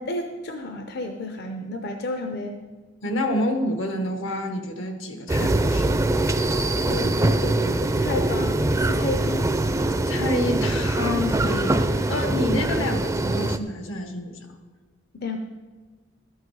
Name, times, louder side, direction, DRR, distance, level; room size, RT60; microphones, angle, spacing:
voice 1, 0.0-2.7 6.8-9.4 15.2-15.4, left 2 dB, 55° left, 5 dB, 0.7 m, -32 dB
voice 2, 3.0-6.0 10.0-14.4, left 1 dB, 85° left, 6 dB, 1.2 m, -28 dB
sound 1, 5.3-13.6, right 2 dB, 15° right, 0.4 m, -23 dB
12.5 x 8.2 x 4.8 m, 1.4 s
head